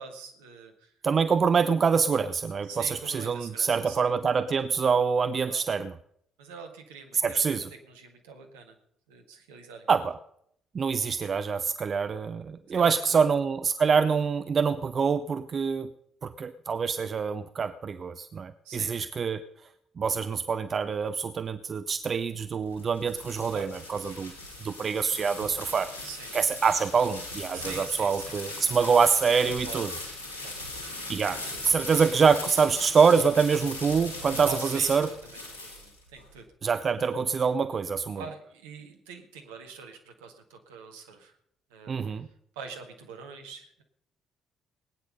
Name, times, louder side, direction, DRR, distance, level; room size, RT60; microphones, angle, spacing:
voice 1, 0.0-0.9 2.7-4.2 4.5-4.7 5.5-5.6 6.4-8.8 9.1-9.9 12.7-13.2 18.6-18.9 23.5-24.0 26.0-26.3 27.5-28.3 29.6-29.9 30.4-30.5 31.3-31.7 32.9-33.0 34.4-36.5 38.2-41.4 41.7-42.0 42.6-43.8, right 5 dB, 70° right, 4 dB, 1.8 m, -44 dB
voice 2, 1.0-5.9 7.2-7.7 9.9-10.2 10.7-15.9 16.2-19.4 20.0-24.3 24.6-26.0 26.3-29.9 31.1-31.4 31.6-35.1 36.6-38.2 41.9-42.3, right 6 dB, 40° right, 12 dB, 0.6 m, -25 dB
sound 1, 22.4-36.2, left 2 dB, 80° left, 2.9 m, -39 dB
19.5 x 9.5 x 5.4 m, 0.70 s
figure-of-eight pair, 45°, 0 cm